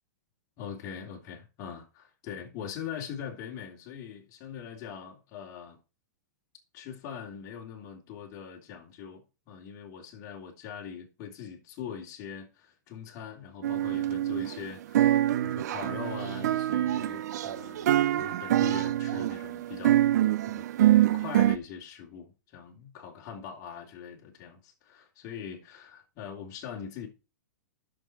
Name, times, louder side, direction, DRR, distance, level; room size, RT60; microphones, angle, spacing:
voice 1, 0.6-5.8 6.7-17.9 18.2-20.0 20.5-20.7 21.1-27.1, left 8 dB, 40° left, 3.1 m, -42 dB
sound 1, 13.6-14.7 14.9-21.6, right 13 dB, 65° right, 0.5 m, -25 dB
10.5 x 6.3 x 4.4 m
hypercardioid pair, 135°, 10 cm